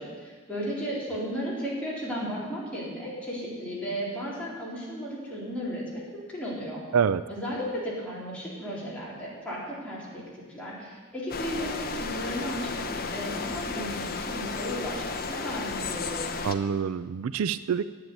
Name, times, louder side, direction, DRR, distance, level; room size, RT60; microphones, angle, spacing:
voice 1, 0.0-6.8 7.3-16.2, equal, 5° left, -7 dB, 4.0 m, -35 dB
sound 1, 11.3-16.5, left 4 dB, 45° left, 0.9 m, -33 dB
voice 2, 16.4-17.8, right 7 dB, 70° right, 14 dB, 0.4 m, -26 dB
10.5 x 8.6 x 9.3 m, 1.4 s
head